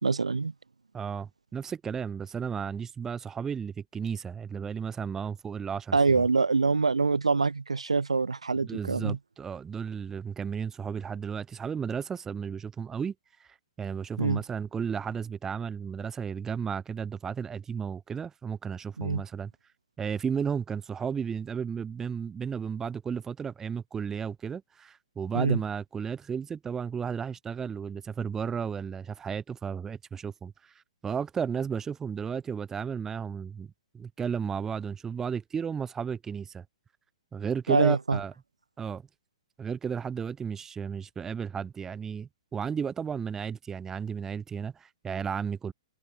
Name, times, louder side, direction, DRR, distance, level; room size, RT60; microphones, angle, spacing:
voice 1, 0.0-0.5 5.9-9.2 14.2-14.4 19.0-19.2 25.3-25.6 37.7-38.2, right 4 dB, 80° right, 1.6 m, -25 dB
voice 2, 0.9-6.2 8.6-13.1 13.4-19.5 20.0-30.7 31.0-33.7 33.9-36.6 37.3-38.3 38.8-39.0 39.6-45.7, right 7 dB, 15° right, 0.6 m, -34 dB
figure-of-eight pair, 120°, 3 cm